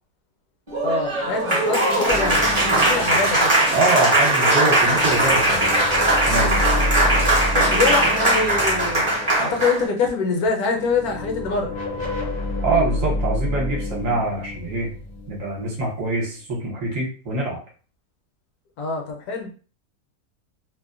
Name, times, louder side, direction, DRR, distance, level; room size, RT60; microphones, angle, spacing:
Applause, 0.7-9.9, right 2 dB, 25° right, 0.7 m, -19 dB
voice 1, 0.8-3.5 7.5-11.8 18.8-19.5, left 4 dB, 75° left, 3 dB, 1.0 m, -25 dB
sound 1, 2.1-4.3 4.7-9.8 10.8-16.2, left 2 dB, 50° left, 0.5 m, -29 dB
voice 2, 3.7-5.7 6.3-6.6 12.6-14.9 15.3-17.6, right 2 dB, 60° right, -3 dB, 1.1 m, -24 dB
2.7 x 2.1 x 2.3 m, 0.38 s
omnidirectional pair, 1.7 m